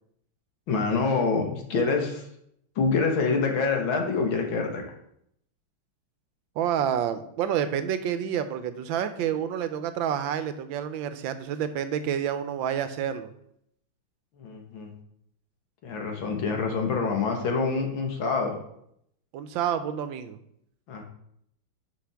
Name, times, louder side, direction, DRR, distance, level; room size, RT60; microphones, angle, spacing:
voice 1, 0.7-2.3 2.8-4.8 14.4-14.9 15.8-18.6 20.9-21.0, left 4 dB, 70° left, 2 dB, 2.0 m, -26 dB
voice 2, 6.6-13.3 19.3-20.4, right 9 dB, 75° right, 11 dB, 1.3 m, -29 dB
10.0 x 5.7 x 3.5 m, 0.72 s
omnidirectional pair, 2.3 m